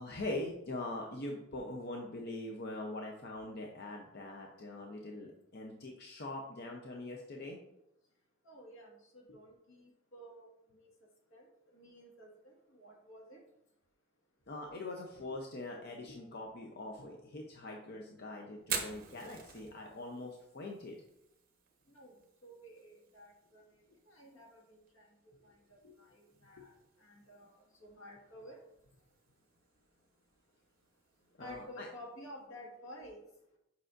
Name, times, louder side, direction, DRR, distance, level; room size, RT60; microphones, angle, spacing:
voice 1, 0.0-7.6 14.5-21.0 25.8-26.0 26.6-26.7 31.4-31.9, left 2 dB, 50° left, 0 dB, 0.7 m, -43 dB
voice 2, 8.5-10.9 11.3-13.4 21.9-22.1 22.4-23.6 24.1-25.1 25.4-25.5 26.0-26.7 27.0-27.5 27.8-28.6 31.4-33.2, equal, 75° left, -1 dB, 1.8 m, -52 dB
Fire, 18.6-32.5, right 6 dB, 45° right, 1.1 m, -49 dB
7.7 x 5.6 x 2.5 m, 0.83 s
head